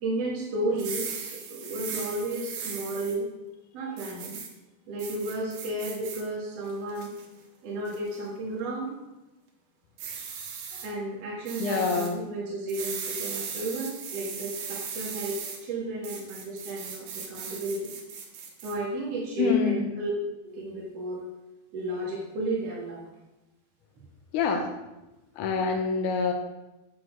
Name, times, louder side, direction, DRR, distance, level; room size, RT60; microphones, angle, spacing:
voice 1, 0.0-3.3 3.7-4.4 4.9-7.1 7.6-9.0 10.7-17.9 18.6-20.1 20.4-21.2 21.7-23.0, right 2 dB, 50° right, -4 dB, 2.2 m, -33 dB
sound 1, 0.7-3.2 4.0-4.5 5.0-6.2 6.7-7.3 7.9-8.2 10.0-10.9 11.5-12.1 12.7-15.6 16.0-18.7, right 6 dB, 65° right, 3.2 m, -38 dB
voice 2, 11.6-12.1 19.4-19.9 24.3-24.7 25.4-26.3, left 5 dB, 75° left, 3 dB, 1.8 m, -26 dB
8.5 x 7.5 x 6.4 m, 1.0 s
omnidirectional pair, 4.9 m